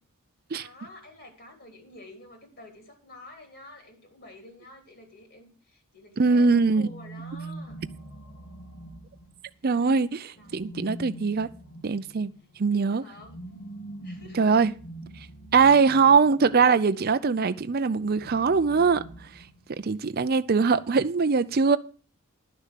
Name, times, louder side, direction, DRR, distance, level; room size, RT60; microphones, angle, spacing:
voice 1, 0.6-7.8 10.4-10.5 12.7-13.4 14.0-14.6 15.6-15.9, left 2 dB, 45° left, 3.3 m, -49 dB
voice 2, 6.2-6.9 9.6-11.5 11.8-12.3 12.6-13.0 14.3-14.7 15.5-19.5 19.8-21.8, right 5 dB, 45° right, 0.5 m, -22 dB
sound 1, 6.4-9.7 10.4-17.0 17.9-19.9, right 1 dB, 60° left, 2.8 m, -44 dB
11.5 x 6.4 x 7.5 m
head